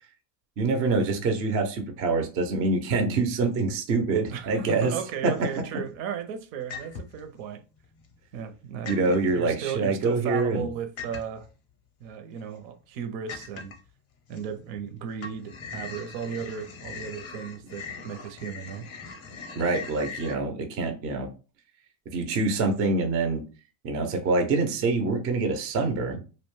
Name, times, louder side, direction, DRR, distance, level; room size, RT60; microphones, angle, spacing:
voice 1, 0.6-4.9 5.2-5.5 8.9-10.7 19.6-21.3 22.1-23.4 23.8-26.2, right 3 dB, 30° right, 0.3 m, -25 dB
voice 2, 4.3-7.6 8.3-11.5 12.0-13.7 14.3-18.9, right 7 dB, 85° right, 0.7 m, -35 dB
sound 1, 4.5-5.0 5.3-6.0 6.7-7.3 7.8-8.6 8.8-9.3 11.0-11.5 12.1-12.2 12.6-12.7 13.3-13.9 14.3-14.9 15.1-20.4, left 5 dB, 30° left, 0.4 m, -41 dB
2.6 x 2.1 x 3.0 m
cardioid pair, 140°, 50 cm